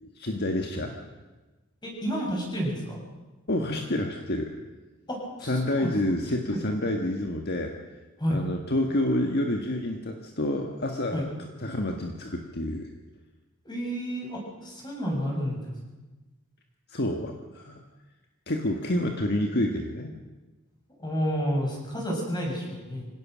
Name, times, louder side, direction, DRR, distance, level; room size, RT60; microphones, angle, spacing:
voice 1, 0.0-1.0 3.5-4.5 5.4-7.7 8.3-11.3 11.6-12.9 16.9-17.8 18.5-20.1, left 1 dB, 50° left, 3 dB, 1.6 m, -28 dB
voice 2, 1.8-3.0 5.1-5.9 6.5-6.6 8.2-8.4 11.1-11.2 13.7-15.7 21.0-23.1, equal, 20° left, -1 dB, 7.1 m, -30 dB
25.0 x 17.5 x 6.4 m, 1.2 s
head